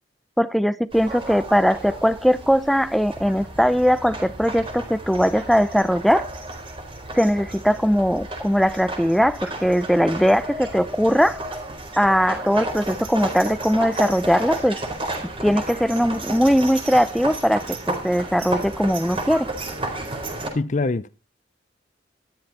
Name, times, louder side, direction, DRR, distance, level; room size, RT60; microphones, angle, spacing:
voice 1, 0.4-6.3 7.1-11.4 12.0-14.8 15.4-19.5, equal, ahead, 0.6 m, -20 dB
sound 1, 0.9-20.5, right 2 dB, 30° right, 4.4 m, -32 dB
voice 2, 20.5-21.1, left 3 dB, 40° left, 0.6 m, -23 dB
13.5 x 12.0 x 4.3 m
head